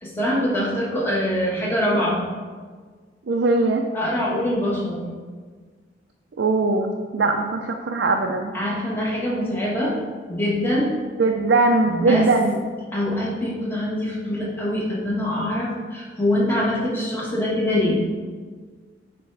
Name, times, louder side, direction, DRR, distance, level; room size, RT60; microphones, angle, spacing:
voice 1, 0.0-2.3 3.9-5.0 8.5-10.0 10.3-10.9 11.9-12.3 12.9-18.0, left 1 dB, 10° left, -5 dB, 1.4 m, -24 dB
voice 2, 3.3-3.8 6.4-8.5 11.2-12.6, right 3 dB, 70° right, 3 dB, 0.5 m, -20 dB
7.3 x 3.4 x 4.7 m, 1.5 s
head